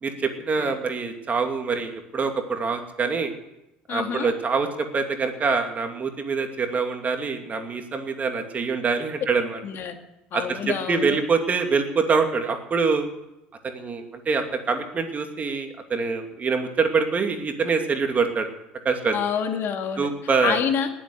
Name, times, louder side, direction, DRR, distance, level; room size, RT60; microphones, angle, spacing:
voice 1, 0.0-3.3 3.9-9.6 10.3-13.1 13.6-18.5 18.8-19.1 20.0-20.6, right 4 dB, 35° right, 5 dB, 2.6 m, -25 dB
voice 2, 3.9-4.3 9.6-9.9 10.3-11.2 19.1-20.1 20.4-20.9, left 7 dB, 55° left, 5 dB, 2.3 m, -27 dB
18.5 x 7.7 x 9.8 m, 0.91 s
hypercardioid pair, 75°, 5 cm